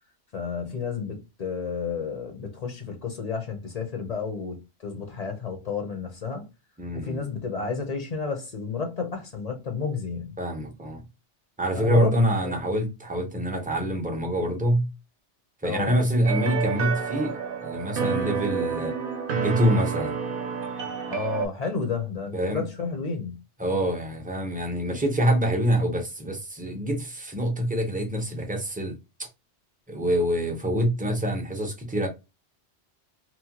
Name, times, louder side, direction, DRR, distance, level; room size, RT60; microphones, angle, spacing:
voice 1, 0.3-6.5 6.9-10.4 11.8-12.1 12.4-12.5 15.6-16.0 21.1-23.4, left 5 dB, 40° left, 0.7 m, -31 dB
voice 2, 6.8-7.2 10.4-11.0 11.6-14.9 15.6-18.9 19.4-20.2 22.3-22.6 23.6-29.3 29.9-32.1, equal, 10° right, 0.4 m, -26 dB
sound 1, 16.3-21.5, right 6 dB, 55° right, 0.7 m, -29 dB
2.9 x 2.1 x 2.8 m
omnidirectional pair, 1.2 m